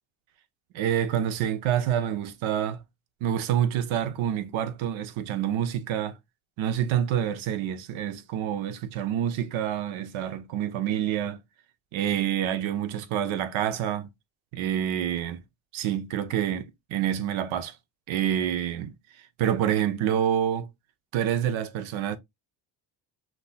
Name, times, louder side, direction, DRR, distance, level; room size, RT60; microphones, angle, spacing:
voice 1, 0.7-2.8 3.2-6.2 6.6-11.4 11.9-14.1 14.5-15.4 15.7-17.8 18.1-18.9 19.4-20.7 21.1-22.2, right 10 dB, 80° right, 0.8 m, -27 dB
6.1 x 2.8 x 2.2 m
cardioid pair, 85°, 47 cm